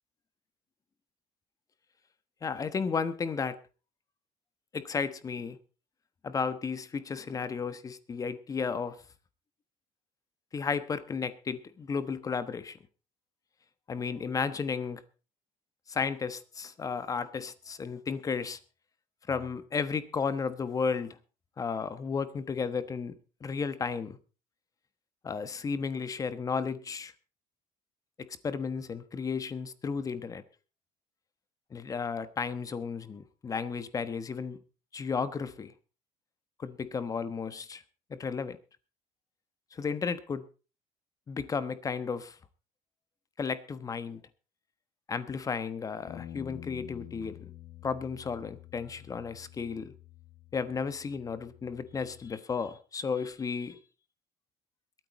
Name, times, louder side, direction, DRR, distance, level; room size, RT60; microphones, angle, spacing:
voice 1, 2.4-3.6 4.7-5.6 6.2-9.0 10.5-12.8 13.9-15.0 15.9-18.6 19.3-21.2 21.6-23.1 23.4-24.2 25.2-27.1 28.4-30.4 31.7-34.6 34.9-35.7 36.6-37.8 38.1-38.6 39.7-40.4 41.3-42.4 43.4-44.2 45.1-47.4 47.8-49.9 50.5-53.8, left 5 dB, 30° left, 13 dB, 1.1 m, -33 dB
Bass guitar, 46.1-52.3, left 12 dB, 60° left, 1.1 m, -49 dB
21.5 x 9.2 x 4.2 m, 0.34 s
cardioid pair, 125°, 12 cm